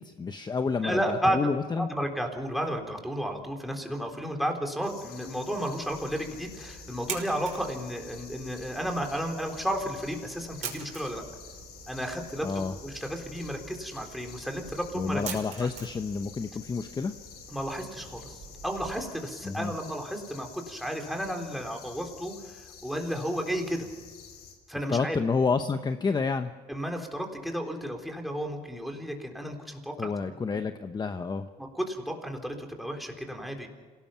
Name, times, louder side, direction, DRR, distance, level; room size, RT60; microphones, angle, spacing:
voice 1, 0.0-1.9 12.4-12.7 14.9-17.1 19.4-19.7 24.9-26.5 30.0-31.5, left 4 dB, 25° left, 9 dB, 0.9 m, -29 dB
voice 2, 0.8-1.4 1.7-11.2 11.9-15.2 15.6-15.7 17.5-23.9 24.7-25.2 26.7-30.1 30.5-30.6 31.6-33.7, equal, ahead, 3 dB, 3.9 m, -33 dB
sound 1, 4.8-24.5, left 7 dB, 80° left, 5.3 m, -49 dB
sound 2, 5.9-19.0, right 6 dB, 45° right, 5.5 m, -45 dB
27.5 x 18.5 x 5.9 m, 1.5 s
cardioid pair, 110°, 17 cm